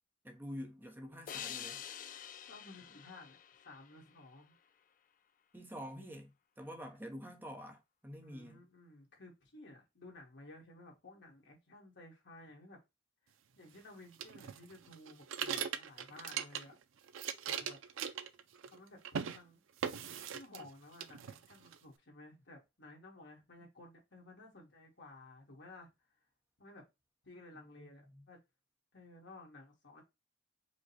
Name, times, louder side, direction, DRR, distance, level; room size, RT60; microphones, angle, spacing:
voice 1, 0.2-1.8 5.5-6.3 6.6-8.6 27.8-28.2, equal, 10° right, 0.8 m, -47 dB
sound 1, 1.3-4.6, left 9 dB, 45° left, 0.4 m, -47 dB
voice 2, 2.5-3.4 3.6-4.5 6.9-7.0 8.2-12.8 13.6-16.8 17.4-17.8 18.7-19.6 20.3-25.9 26.6-26.8 27.2-28.4 28.9-30.0, left 2 dB, 65° left, 1.6 m, -55 dB
sound 2, 14.2-16.8 17.1-18.8 19.0-19.4 19.8-20.7 21.0-21.8, right 7 dB, 85° right, 0.5 m, -40 dB
5.0 x 2.2 x 4.0 m
head